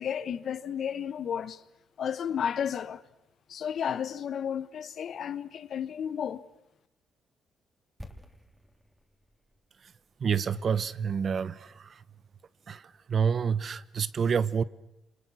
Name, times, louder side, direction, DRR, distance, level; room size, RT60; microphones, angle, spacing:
voice 1, 0.0-1.6 2.0-3.0 3.5-6.5, left 8 dB, 60° left, 1.3 m, -32 dB
sound 1, 8.0-11.9 12.2-12.3, equal, 5° right, 3.1 m, -52 dB
voice 2, 10.2-12.0 12.7-12.8 13.1-14.6, right 6 dB, 50° right, 1.0 m, -28 dB
29.0 x 26.5 x 6.4 m
cardioid pair, 90°, 0 cm